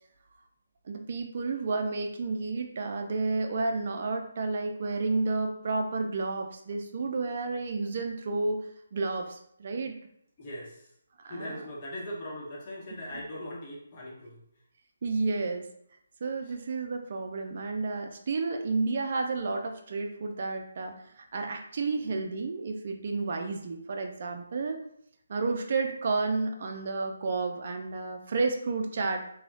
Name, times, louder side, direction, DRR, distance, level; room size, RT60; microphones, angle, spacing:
voice 1, 0.8-10.0 11.2-11.6 15.0-15.7 16.2-24.8 25.3-29.3, right 3 dB, 50° right, 4 dB, 0.3 m, -31 dB
voice 2, 10.4-10.9 11.3-14.4 16.4-16.5, left 1 dB, 30° left, -4 dB, 0.8 m, -40 dB
3.1 x 2.1 x 2.4 m, 0.70 s
hypercardioid pair, 160°, 0 cm